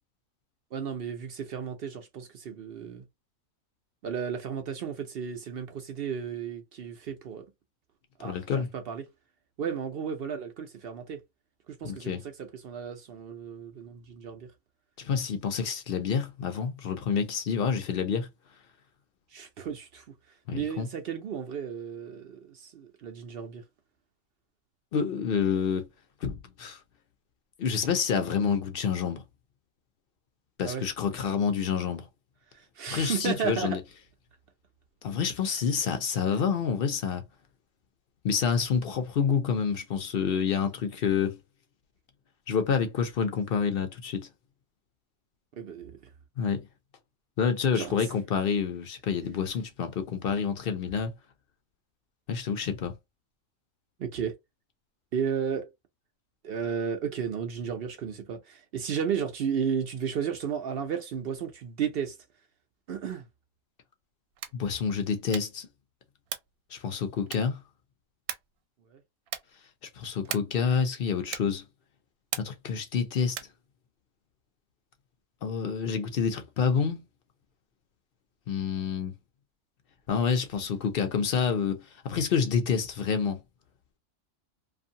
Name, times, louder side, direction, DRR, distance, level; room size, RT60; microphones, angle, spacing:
voice 1, 0.7-3.1 4.0-7.5 8.2-9.0 9.6-11.2 11.8-14.5 19.3-20.0 20.5-23.6 30.6-30.9 32.5-33.8 45.6-46.0 47.7-48.1 54.0-54.3 55.1-55.7 56.4-62.2 62.9-63.3 68.9-69.0, right 7 dB, 60° right, 0.6 m, -33 dB
voice 2, 8.2-8.7 11.8-12.2 15.0-18.3 20.5-20.9 24.9-25.8 26.2-26.8 27.6-29.2 30.6-32.1 32.9-33.8 35.0-37.2 38.2-41.4 42.5-44.3 46.4-46.6 47.4-51.1 52.3-53.0 64.5-65.7 66.7-67.6 69.9-71.6 72.4-73.4 75.4-77.0 78.5-79.1 80.1-83.4, left 6 dB, 55° left, 0.6 m, -28 dB
sound 1, 64.3-64.7 65.3-65.7 66.3-66.6 67.3-67.7 68.3-68.6 69.3-69.6 70.3-70.7 71.3-71.6 72.3-72.7 73.3-73.6, right 10 dB, 80° right, 1.0 m, -38 dB
2.6 x 2.5 x 2.6 m
omnidirectional pair, 1.4 m